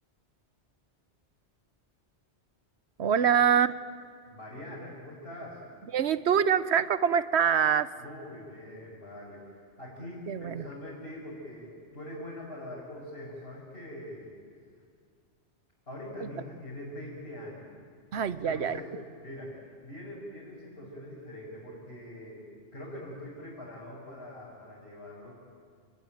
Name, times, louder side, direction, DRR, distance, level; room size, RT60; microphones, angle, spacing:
voice 1, 3.0-3.7 5.9-7.9 10.3-10.6 18.1-18.8, right 8 dB, 70° right, 14 dB, 1.1 m, -24 dB
voice 2, 4.3-5.6 8.0-14.4 15.9-17.7 18.4-22.4 22.7-25.3, left 1 dB, 60° left, -7 dB, 6.7 m, -43 dB
29.5 x 20.5 x 9.3 m, 2.1 s
omnidirectional pair, 1.2 m